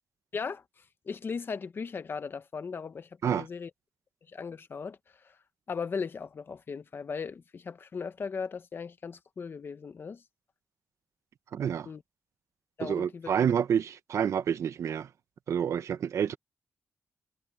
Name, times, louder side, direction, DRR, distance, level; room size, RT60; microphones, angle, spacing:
voice 1, 0.3-0.6 1.1-3.7 4.3-5.0 5.2-5.3 5.7-10.2 11.8-12.0 12.8-13.3, left 5 dB, 45° left, 1.2 m, -37 dB
voice 2, 11.5-11.9 12.8-15.1 15.5-16.4, right 8 dB, 80° right, 1.1 m, -28 dB
wide cardioid pair, 130°, 5 cm